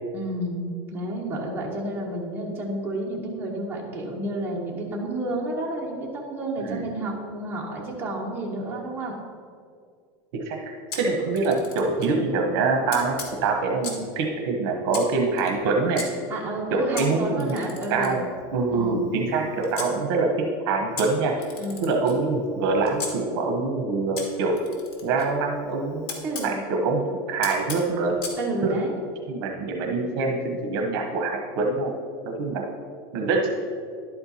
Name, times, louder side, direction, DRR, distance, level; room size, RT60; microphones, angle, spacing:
voice 1, 0.1-9.1 16.3-18.2 18.7-19.0 21.6-21.9 26.2-26.6 28.4-28.9, right 1 dB, 15° right, -4 dB, 1.2 m, -30 dB
voice 2, 10.3-16.0 16.7-17.6 17.9-18.2 18.5-21.3 21.8-24.6 25.0-28.2 28.6-28.8 29.3-32.0 32.2-32.7 33.1-33.5, right 3 dB, 60° right, 2 dB, 0.9 m, -25 dB
Camera, 10.9-12.2 12.9-14.1 14.9-16.1 17.0-19.9 21.0-23.1 24.2-26.5 27.4-28.4, left 4 dB, 65° left, 1.7 m, -38 dB
11.0 x 4.4 x 4.2 m, 2.2 s
supercardioid pair, 155°, 13 cm